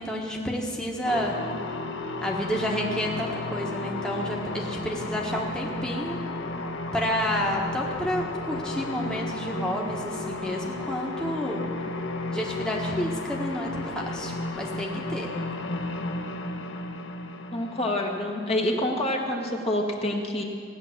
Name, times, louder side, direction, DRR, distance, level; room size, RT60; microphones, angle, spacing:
voice 1, 0.0-1.4 2.2-6.2 6.9-11.6 12.3-15.3, equal, 5° left, -2 dB, 1.3 m, -30 dB
sound 1, 1.0-19.4, left 2 dB, 65° left, 1.0 m, -33 dB
voice 2, 17.5-20.4, left 1 dB, 30° left, 1 dB, 1.3 m, -27 dB
16.5 x 9.9 x 7.3 m, 2.2 s
head